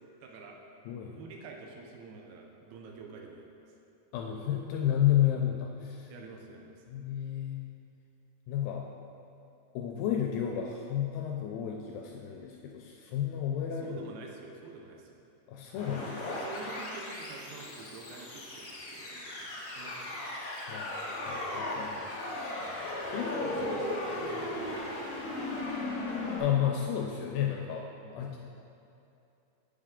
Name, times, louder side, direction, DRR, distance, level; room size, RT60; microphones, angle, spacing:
voice 1, 0.2-0.6 1.1-3.7 6.1-6.8 13.7-15.2 16.2-20.3 22.6-22.9 23.3-25.7 28.0-28.4, right 4 dB, 80° right, 1 dB, 2.5 m, -47 dB
voice 2, 0.9-1.2 4.1-6.1 6.9-7.6 8.5-8.9 9.7-14.0 15.5-16.3 20.7-20.9 21.3-22.1 23.1-23.7 26.4-27.9 28.1-28.4, left 10 dB, 80° left, 1 dB, 2.1 m, -31 dB
sound 1, 15.7-26.4, left 2 dB, 65° left, 1.2 m, -37 dB
8.2 x 7.5 x 3.7 m, 2.7 s
omnidirectional pair, 4.5 m